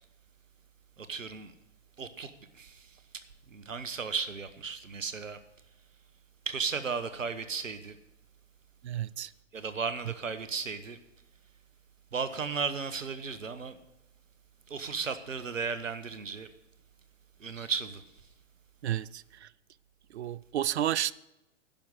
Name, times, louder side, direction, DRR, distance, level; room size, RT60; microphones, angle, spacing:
voice 1, 1.0-1.5 2.0-5.4 6.5-8.0 9.5-11.0 12.1-13.8 14.7-16.5 17.4-18.0, right 5 dB, 85° right, 1.1 m, -35 dB
voice 2, 8.8-9.3 18.8-19.5 20.1-21.1, right 12 dB, 60° right, 0.5 m, -31 dB
10.5 x 6.3 x 9.0 m
figure-of-eight pair, 120°, 38 cm